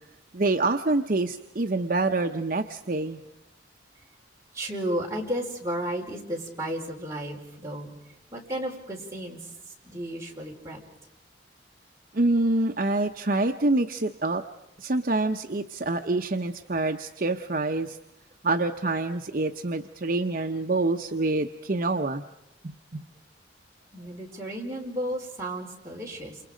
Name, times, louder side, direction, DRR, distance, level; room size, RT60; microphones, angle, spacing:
voice 1, 0.3-3.2 12.1-14.4 14.8-18.0 18.4-22.2 22.6-23.0, right 2 dB, 50° right, 4 dB, 0.8 m, -26 dB
voice 2, 4.5-7.9 8.3-9.4 9.8-10.8 23.9-26.4, right 1 dB, 15° right, -2 dB, 4.8 m, -33 dB
28.5 x 28.0 x 5.1 m, 0.90 s
head